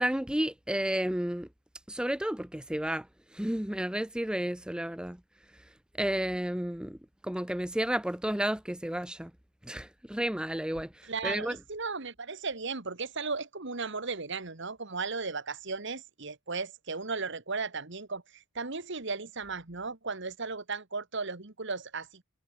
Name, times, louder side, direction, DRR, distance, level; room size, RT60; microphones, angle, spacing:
voice 1, 0.0-1.5 1.9-3.1 3.3-5.2 6.0-7.0 7.2-9.3 9.7-11.6, right 1 dB, 5° right, 0.6 m, -31 dB
voice 2, 11.0-22.2, right 4 dB, 65° right, 2.0 m, -36 dB
head